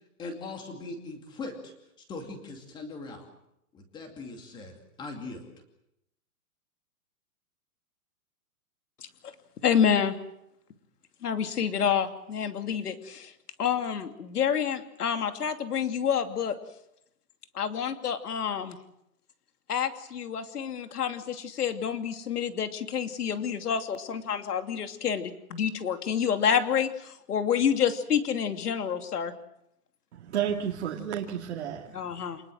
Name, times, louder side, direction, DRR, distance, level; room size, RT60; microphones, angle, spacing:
voice 1, 0.2-1.7 2.1-3.3 3.7-5.5, left 3 dB, 10° left, 5 dB, 2.4 m, -40 dB
voice 2, 9.6-10.2 11.2-13.3 13.6-16.6 17.5-18.8 19.7-29.3 31.9-32.4, left 8 dB, 80° left, 8 dB, 2.9 m, -28 dB
voice 3, 30.1-32.2, right 9 dB, 45° right, -1 dB, 2.3 m, -32 dB
28.0 x 20.0 x 7.7 m, 0.80 s
hypercardioid pair, 175°, 46 cm